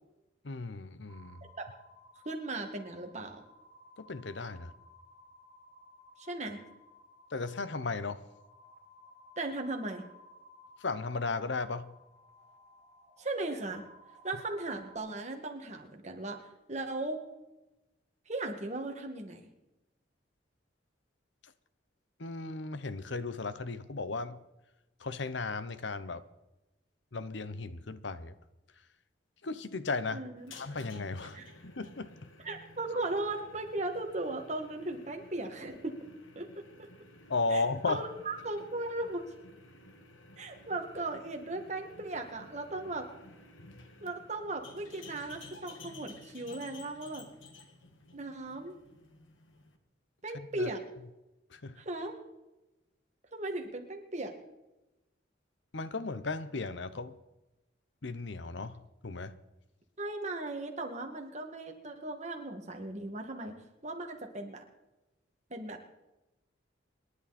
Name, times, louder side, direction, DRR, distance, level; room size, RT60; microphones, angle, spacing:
voice 1, 0.4-1.4 4.0-4.7 7.3-8.2 10.8-11.9 21.4-21.5 22.2-24.4 25.0-26.2 27.1-28.3 29.4-30.2 30.5-32.3 37.3-38.0 50.3-50.7 51.5-51.8 55.7-57.2 58.0-59.3, left 3 dB, 70° left, 0.9 m, -35 dB
sound 1, 1.1-15.0, left 1 dB, 5° left, 5.9 m, -58 dB
voice 2, 2.3-3.4 6.2-6.6 9.4-10.0 13.2-13.8 14.2-16.4 16.7-17.2 18.3-19.4 30.1-30.5 31.3-31.5 32.4-36.0 36.4-36.5 36.8-36.9 37.5-39.3 40.4-43.1 44.0-47.3 48.1-48.8 50.2-50.8 51.8-52.2 53.3-54.3 60.0-63.6 63.8-64.6 65.5-65.8, right 2 dB, 35° right, 2.1 m, -37 dB
sound 2, 30.4-49.8, left 2 dB, 90° left, 1.9 m, -54 dB
27.0 x 11.0 x 4.3 m
head